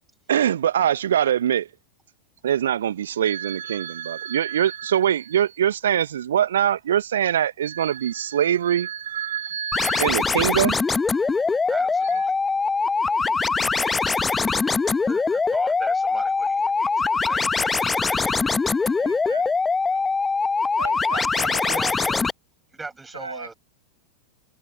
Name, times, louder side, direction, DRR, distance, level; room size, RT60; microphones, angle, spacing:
voice 1, 0.3-1.7 2.4-10.8, right 10 dB, 65° right, 1.4 m, -23 dB
sound 1, 9.7-22.3, left 4 dB, 15° left, 1.1 m, -22 dB
voice 2, 11.7-12.3 15.0-18.3 21.1-22.2 22.7-23.5, right 3 dB, 10° right, 7.9 m, -38 dB
voice 3, 19.0-20.2 20.8-22.2 23.1-23.5, right 3 dB, 80° right, 6.4 m, -38 dB
figure-of-eight pair, 90°, 0 cm